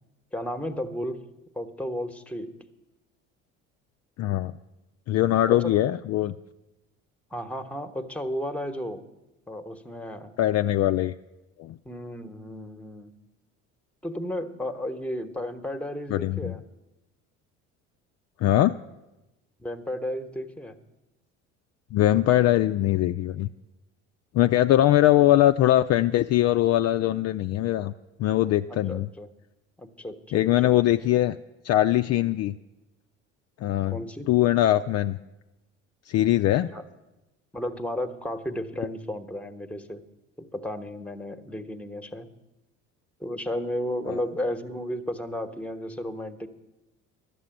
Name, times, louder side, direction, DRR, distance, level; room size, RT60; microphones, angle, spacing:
voice 1, 0.3-1.2 1.5-2.5 5.5-5.7 7.3-9.0 9.5-10.3 11.8-13.1 14.0-16.6 19.6-20.8 28.7-29.3 29.8-30.7 33.9-34.3 36.6-36.8 37.5-40.0 40.4-42.3 43.2-46.5, left 1 dB, 5° left, 9 dB, 1.0 m, -33 dB
voice 2, 4.2-4.5 5.1-6.3 10.4-11.1 11.6-11.8 16.1-16.6 18.4-18.8 21.9-23.5 24.3-27.9 28.2-29.1 30.3-31.4 31.6-32.5 33.6-34.0 34.3-35.2 36.1-36.7 44.1-44.2, left 13 dB, 45° left, 8 dB, 0.4 m, -21 dB
11.5 x 6.9 x 9.1 m, 1.0 s
hypercardioid pair, 70°, 37 cm